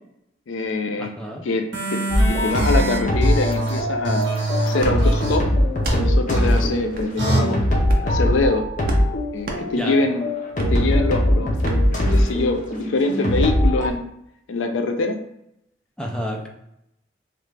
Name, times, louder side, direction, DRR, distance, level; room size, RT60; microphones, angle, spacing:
voice 1, 0.5-1.1 1.4-2.0 2.3-4.2 4.6-5.5 6.0-7.6 8.0-8.7 9.3-10.2 10.6-11.5 12.1-14.1 14.5-15.2, left 3 dB, 85° left, 5 dB, 0.4 m, -24 dB
voice 2, 1.0-1.5 9.8-10.0 16.0-16.5, equal, 5° left, 0 dB, 0.4 m, -30 dB
sound 1, 1.7-5.4 5.9-6.0 6.3-6.6 7.2-7.4, right 2 dB, 70° right, 0.8 m, -24 dB
sound 2, 2.1-13.9, equal, 40° left, 0.6 m, -21 dB
sound 3, 4.8-5.0 5.8-6.0 6.9-7.1 7.8-8.1 8.8-9.1 9.4-9.6 10.6-10.7 11.6-11.8, right 1 dB, 45° right, 0.5 m, -29 dB
3.1 x 2.3 x 3.2 m, 0.81 s
head